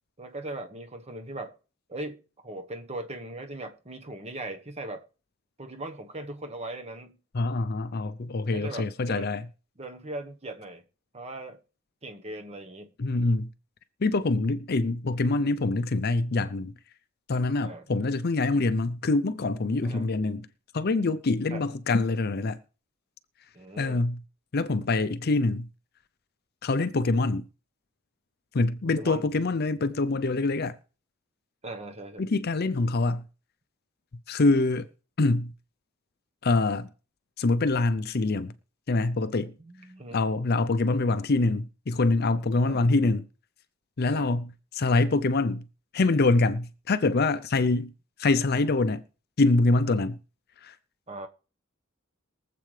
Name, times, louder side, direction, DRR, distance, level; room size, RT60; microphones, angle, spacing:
voice 1, 0.2-1.5 1.9-5.1 5.6-7.2 8.5-9.3 9.8-10.8 11.1-11.6 12.0-12.9 17.6-17.8 19.8-20.1 21.5-21.6 23.5-24.0 26.8-26.9 29.0-29.2 31.6-32.3 39.6-40.2 42.6-42.8 44.1-44.3 51.1-51.3, right 2 dB, 30° right, 1.2 m, -39 dB
voice 2, 7.3-9.5 13.0-13.5 14.0-16.7 17.3-20.5 20.7-22.6 23.8-24.2 24.5-25.7 26.6-27.5 28.5-30.8 32.2-33.2 34.3-34.9 35.2-35.5 36.4-36.9 37.4-38.5 38.9-39.5 40.1-43.3 44.0-45.7 45.9-47.9 48.2-49.0 49.4-50.2 50.6-50.8, left 3 dB, 45° left, 0.5 m, -25 dB
22.5 x 7.7 x 3.3 m
head